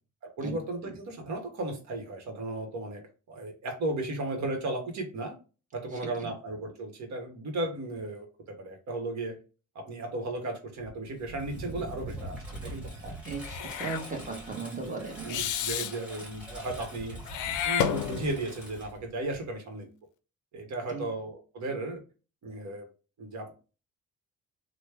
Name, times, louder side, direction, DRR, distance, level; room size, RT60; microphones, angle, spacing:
voice 1, 0.2-3.0 3.3-5.3 5.7-9.4 9.7-13.2 13.6-13.7 14.0-14.1 14.8-17.2 17.6-19.9 20.5-22.0 22.4-22.9 23.2-23.5, right 2 dB, 65° right, 3 dB, 1.2 m, -35 dB
Engine, 10.8-19.5, right 1 dB, 5° right, 1.3 m, -43 dB
voice 2, 13.2-15.4 20.9-21.0, right 4 dB, 25° right, 1 dB, 1.3 m, -37 dB
Meow / Hiss, 13.4-14.0 15.3-15.9 17.3-18.5, left 9 dB, 80° left, 0.5 m, -30 dB
3.1 x 2.2 x 3.3 m, 0.34 s
cardioid pair, 90°, 30 cm